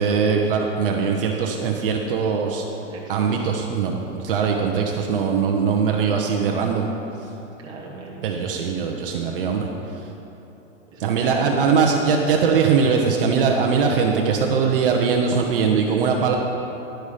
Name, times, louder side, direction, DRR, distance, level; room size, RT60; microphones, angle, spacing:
voice 1, 0.0-2.6 3.1-6.9 8.2-9.7 11.0-16.4, right 6 dB, 45° right, 1 dB, 0.7 m, -21 dB
voice 2, 2.7-3.5 7.6-8.7 10.9-11.7, right 3 dB, 10° right, -4 dB, 0.8 m, -38 dB
10.5 x 5.4 x 4.9 m, 3.0 s
hypercardioid pair, 160°, 38 cm